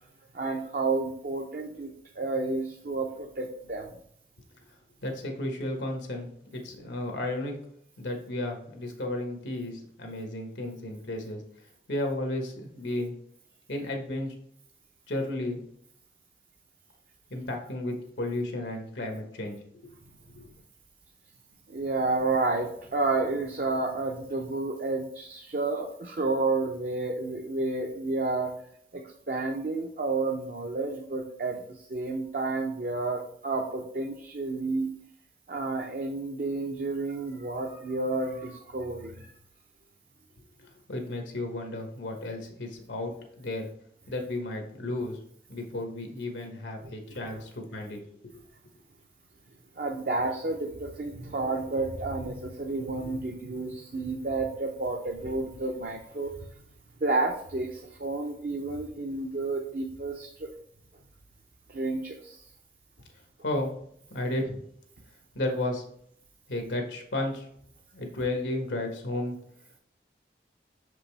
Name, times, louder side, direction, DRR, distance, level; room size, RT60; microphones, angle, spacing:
voice 1, 0.3-4.0 21.7-28.6 28.9-34.9 35.5-39.4 46.8-47.4 49.8-56.3 57.0-60.5 61.7-62.5, right 3 dB, 50° right, 2 dB, 0.5 m, -31 dB
voice 2, 5.0-7.5 8.0-11.4 11.9-13.1 13.7-14.3 15.1-15.6 17.3-19.9 20.4-20.5 40.9-43.7 44.1-45.2 45.5-48.0 48.3-48.4 63.4-63.7 64.1-64.6 65.3-65.8 66.5-67.5 67.9-69.4, left 1 dB, 90° left, 3 dB, 1.2 m, -33 dB
6.1 x 5.2 x 3.3 m, 0.69 s
head